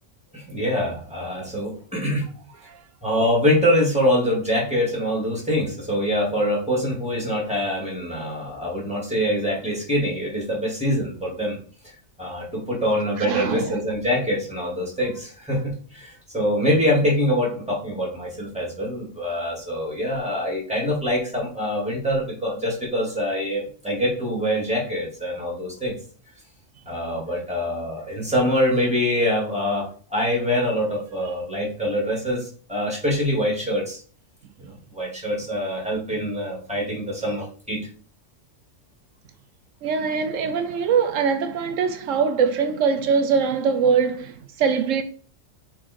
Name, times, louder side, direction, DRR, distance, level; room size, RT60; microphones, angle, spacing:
voice 1, 0.3-2.3 3.0-11.6 11.8-25.9 26.9-34.0 34.6-37.8, equal, 5° right, 2.8 m, -24 dB
voice 2, 13.2-13.8 39.8-45.0, right 6 dB, 85° right, 1.0 m, -22 dB
6.1 x 4.3 x 4.7 m
omnidirectional pair, 1.3 m